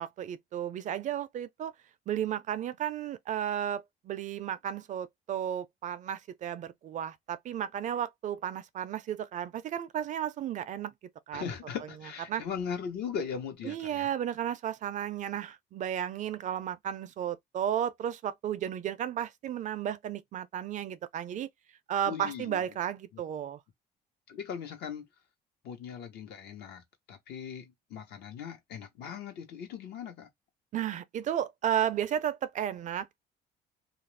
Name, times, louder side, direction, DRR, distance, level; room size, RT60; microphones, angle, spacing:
voice 1, 0.0-1.7 2.1-10.9 11.3-11.5 12.3-12.4 13.6-21.5 21.9-23.6 30.7-33.2, right 10 dB, 45° right, 0.4 m, -33 dB
voice 2, 11.3-14.1 22.1-22.6 23.1-23.2 24.3-25.1 25.6-26.8 27.1-30.3, left 7 dB, 75° left, 1.0 m, -39 dB
2.4 x 2.0 x 3.2 m
cardioid pair, 110°, 17 cm